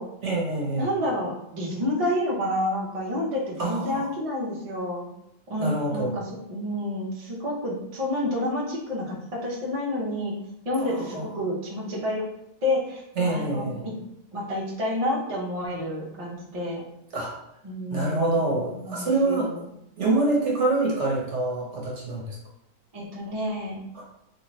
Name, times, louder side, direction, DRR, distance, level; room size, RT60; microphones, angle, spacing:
voice 1, 0.2-0.9 3.6-4.1 5.6-6.1 10.8-10.9 11.1-11.2 13.2-13.8 17.1-17.3 17.9-19.5 20.0-22.4 23.9-24.0, right 2 dB, 55° right, -3 dB, 1.1 m, -25 dB
voice 2, 0.8-5.1 5.5-6.2 6.5-10.3 10.6-12.3 12.6-13.9 14.3-16.8 17.6-18.5 18.7-19.7 22.9-23.8, left 1 dB, 35° right, -5 dB, 0.6 m, -29 dB
3.3 x 2.9 x 3.0 m, 0.81 s
omnidirectional pair, 1.6 m